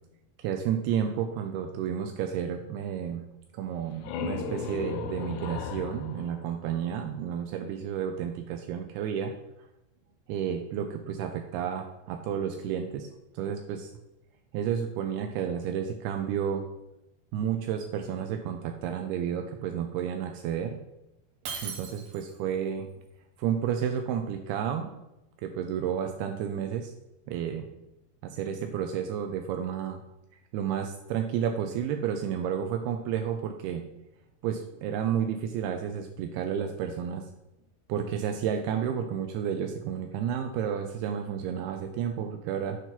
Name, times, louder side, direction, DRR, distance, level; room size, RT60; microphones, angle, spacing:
voice 1, 0.4-3.3 3.5-9.3 10.3-13.1 13.3-13.9 14.5-16.6 17.3-20.8 21.6-22.9 23.4-24.9 25.4-26.9 27.3-27.7 28.2-30.0 30.5-33.8 34.4-37.2 37.9-42.8, right 8 dB, 80° right, 5 dB, 2.4 m, -31 dB
sound 1, 3.7-7.3, left 5 dB, 85° left, 2.7 m, -37 dB
Shatter, 21.5-22.5, right 6 dB, 65° right, 2.0 m, -38 dB
8.1 x 4.5 x 5.8 m, 0.90 s
omnidirectional pair, 4.8 m